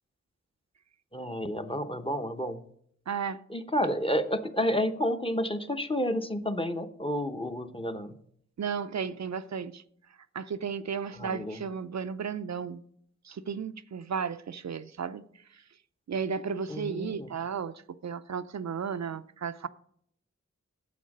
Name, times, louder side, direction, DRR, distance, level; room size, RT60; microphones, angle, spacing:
voice 1, 1.1-2.6 3.5-8.1 11.2-11.6 16.7-17.3, equal, 20° left, 0.8 m, -30 dB
voice 2, 3.1-3.4 8.6-9.8 10.3-12.8 13.2-15.2 16.1-19.7, right 6 dB, 70° right, 0.5 m, -34 dB
9.3 x 7.1 x 5.3 m
wide cardioid pair, 50°, 29 cm